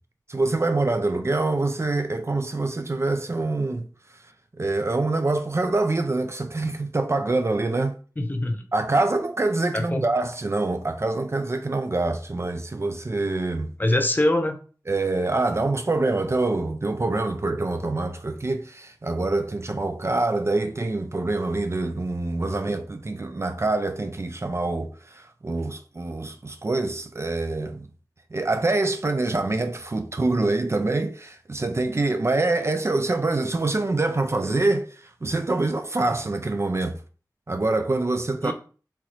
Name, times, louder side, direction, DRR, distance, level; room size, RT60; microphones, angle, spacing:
voice 1, 0.3-3.9 4.5-8.0 8.7-13.7 14.9-27.9 28.3-37.0 37.5-38.5, right 2 dB, 40° right, 0.3 m, -25 dB
voice 2, 8.2-8.7 9.7-10.0 13.8-14.6 38.4-38.5, left 1 dB, 25° left, 0.5 m, -23 dB
3.0 x 2.4 x 3.0 m
wide cardioid pair, 45°, 7 cm